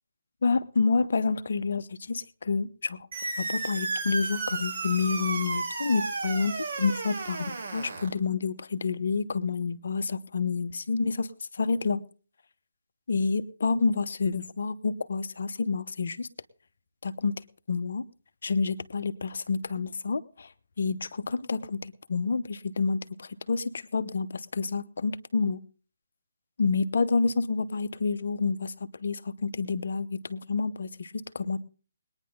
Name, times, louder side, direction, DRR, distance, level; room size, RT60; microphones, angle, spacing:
voice 1, 0.4-3.1 3.4-7.5 7.7-11.3 11.5-12.0 13.1-16.3 17.0-18.0 18.4-20.5 20.8-25.6 26.6-31.6, left 4 dB, 60° left, 10 dB, 1.0 m, -28 dB
sound 1, 3.1-8.1, right 3 dB, 55° right, 4.2 m, -33 dB
21.5 x 9.8 x 3.7 m, 0.37 s
figure-of-eight pair, 150°, 0 cm